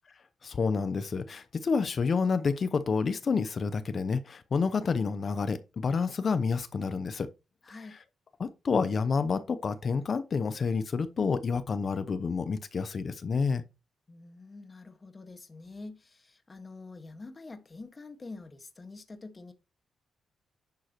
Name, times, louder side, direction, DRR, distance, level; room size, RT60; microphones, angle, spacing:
voice 1, 0.4-7.3 8.4-13.6, left 5 dB, 50° left, 0.8 m, -29 dB
voice 2, 7.6-8.0 14.1-19.5, left 3 dB, 35° left, 1.6 m, -46 dB
10.5 x 6.3 x 3.0 m
cardioid pair, 70°, 0 cm